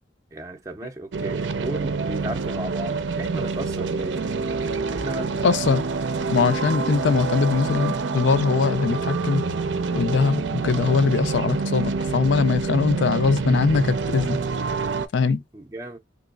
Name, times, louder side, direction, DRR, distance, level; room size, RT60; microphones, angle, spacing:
voice 1, 0.3-4.2 4.9-5.4 15.5-16.0, right 1 dB, 20° right, 0.4 m, -34 dB
sound 1, 1.1-15.1, right 4 dB, 85° right, 0.5 m, -27 dB
voice 2, 5.4-5.8 6.3-9.4 9.9-14.4 15.1-15.4, left 5 dB, 80° left, 0.4 m, -21 dB
3.5 x 3.0 x 2.3 m
head